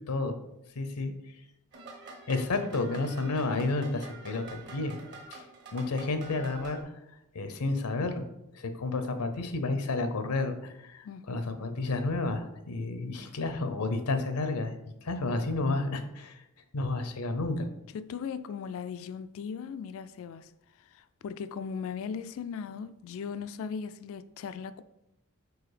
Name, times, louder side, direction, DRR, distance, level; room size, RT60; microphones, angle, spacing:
voice 1, 0.8-1.1 2.3-5.0 5.3-5.4 5.7-6.8 7.3-8.2 8.5-14.7 15.0-16.4 16.7-17.7, left 3 dB, 80° left, 0.7 m, -31 dB
sound 1, 1.7-6.8, right 3 dB, 50° right, 1.2 m, -47 dB
voice 2, 17.9-20.5 20.8-24.8, left 6 dB, 60° left, 0.3 m, -38 dB
4.8 x 4.0 x 4.9 m
head